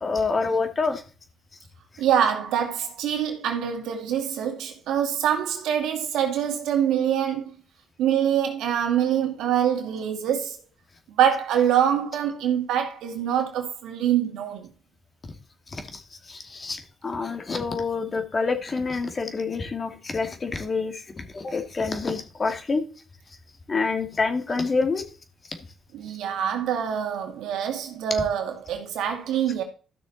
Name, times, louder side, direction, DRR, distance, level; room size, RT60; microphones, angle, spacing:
voice 1, 0.0-1.0 15.7-16.0 16.3-22.8 23.7-25.1, left 4 dB, 35° left, 2.4 m, -27 dB
voice 2, 2.0-7.5 8.0-10.6 11.2-14.7 25.9-29.6, right 9 dB, 85° right, 2.2 m, -25 dB
13.5 x 6.2 x 4.2 m
cardioid pair, 90°, 0 cm